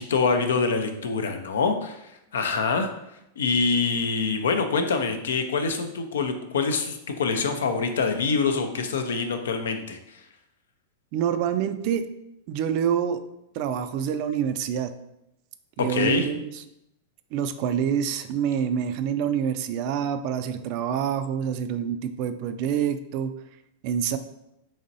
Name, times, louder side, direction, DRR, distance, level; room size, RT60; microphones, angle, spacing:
voice 1, 0.0-2.0 2.3-2.9 3.4-10.0 15.8-16.3, left 4 dB, 75° left, 7 dB, 0.4 m, -25 dB
voice 2, 11.1-12.0 12.5-13.2 13.5-14.9 15.8-16.6 17.3-23.3 23.8-24.2, right 8 dB, 50° right, 9 dB, 0.3 m, -26 dB
4.0 x 3.0 x 2.6 m, 0.85 s
hypercardioid pair, 100°, 0 cm